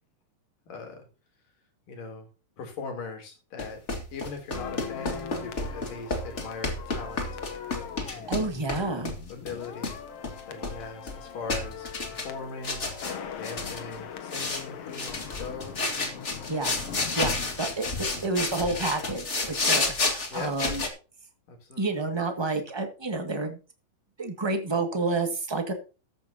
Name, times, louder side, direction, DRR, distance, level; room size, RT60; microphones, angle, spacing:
voice 1, 0.7-1.1 1.9-2.3 2.6-3.8 4.1-7.3 8.1-8.5 8.9-9.9 10.4-12.9 13.4-15.8 20.3-20.6 21.5-22.0, left 4 dB, 70° left, 4 dB, 4.9 m, -40 dB
sound 1, 3.6-8.8 9.0-10.0 10.2-11.2 11.5-12.3 12.6-13.2 13.4-13.9 14.3-14.6 14.9-20.9, left 3 dB, 25° left, 1.8 m, -31 dB
sound 2, 4.5-18.7 18.9-19.1, left 7 dB, 55° left, 2.0 m, -41 dB
voice 2, 8.3-9.1 16.5-16.7 17.1-20.8 21.8-23.6 24.2-25.7, right 3 dB, 15° right, 5 dB, 1.1 m, -29 dB
14.0 x 10.5 x 2.8 m, 0.33 s
omnidirectional pair, 3.9 m